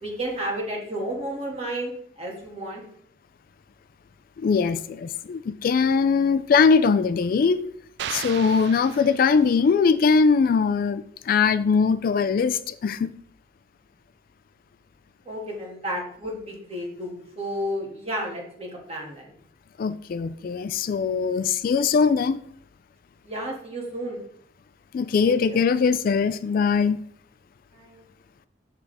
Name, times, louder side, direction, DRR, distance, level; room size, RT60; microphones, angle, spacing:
voice 1, 0.0-2.8 15.3-19.3 23.2-24.2 25.2-25.3 27.7-28.0, right 1 dB, 35° right, 2.3 m, -32 dB
voice 2, 4.4-7.7 8.1-13.1 19.8-22.4 24.9-27.0, left 5 dB, 50° left, 0.3 m, -21 dB
sound 1, 8.0-9.7, right 9 dB, 65° right, 0.3 m, -36 dB
7.3 x 6.8 x 3.5 m
head